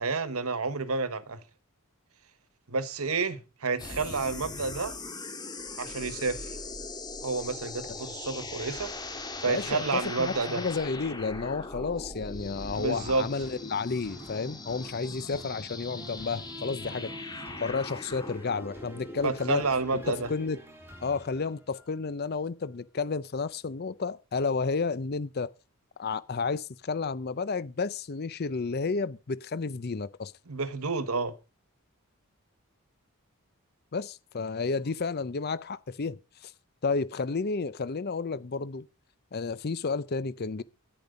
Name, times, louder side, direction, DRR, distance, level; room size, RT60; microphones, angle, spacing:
voice 1, 0.0-1.4 2.7-5.0 5.8-6.6 7.2-10.6 12.7-13.3 19.2-20.3 30.5-31.3, right 4 dB, 75° right, 1.2 m, -30 dB
sound 1, 3.8-20.6, left 2 dB, 20° left, 1.8 m, -40 dB
voice 2, 9.5-17.1 17.6-19.6 20.1-20.6 21.0-25.5 26.0-30.3 33.9-36.5 36.8-38.9 39.3-40.6, left 4 dB, 45° left, 0.6 m, -31 dB
sound 2, 12.7-22.1 22.6-22.7, right 1 dB, 10° right, 3.4 m, -49 dB
10.5 x 10.0 x 5.1 m
head